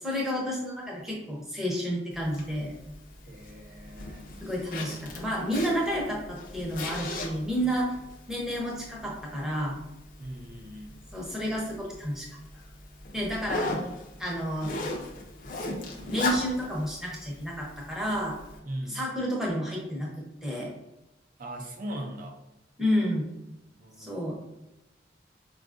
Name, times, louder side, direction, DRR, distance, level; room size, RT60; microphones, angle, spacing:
voice 1, 0.0-2.7 4.4-7.9 8.3-9.8 11.1-12.3 13.1-13.7 14.2-14.9 16.0-18.4 18.9-20.7 22.8-23.3 24.0-24.4, equal, ahead, -4 dB, 0.7 m, -30 dB
Zipper (clothing), 2.1-18.6, left 2 dB, 45° left, 0.5 m, -38 dB
voice 2, 3.2-4.3 10.2-11.0 18.6-19.0 21.4-22.4 23.8-24.2, right 1 dB, 45° right, 2 dB, 0.5 m, -39 dB
4.6 x 2.3 x 2.5 m, 0.95 s
head